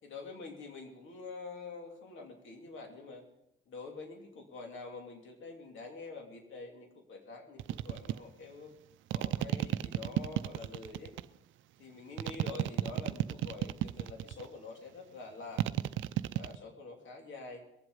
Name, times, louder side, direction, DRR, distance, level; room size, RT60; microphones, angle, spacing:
voice 1, 0.0-3.2 3.7-8.7 9.1-11.1 11.8-15.6 16.3-17.6, left 3 dB, 70° left, 2 dB, 2.9 m, -46 dB
sound 1, 7.6-8.2 9.1-11.3 12.2-14.5 15.6-16.6, right 13 dB, 80° right, 0.5 m, -32 dB
22.0 x 7.9 x 5.5 m, 0.84 s
cardioid pair, 90°, 20 cm